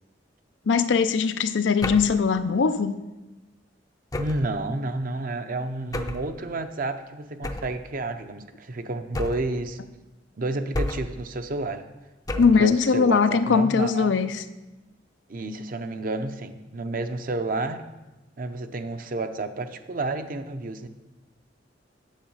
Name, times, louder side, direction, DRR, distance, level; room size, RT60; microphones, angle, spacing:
voice 1, 0.7-3.0 12.4-14.4, left 5 dB, 90° left, 11 dB, 0.5 m, -21 dB
sound 1, 1.8-2.2 4.1-4.6 5.9-6.3 7.4-7.8 9.1-9.6 10.7-11.2 12.3-12.7, left 1 dB, 20° left, 0.5 m, -31 dB
voice 2, 4.2-9.8 10.4-11.9 12.3-14.1 15.3-17.8 18.4-20.9, right 2 dB, 50° right, 8 dB, 0.7 m, -30 dB
8.0 x 7.4 x 5.5 m, 1.1 s
head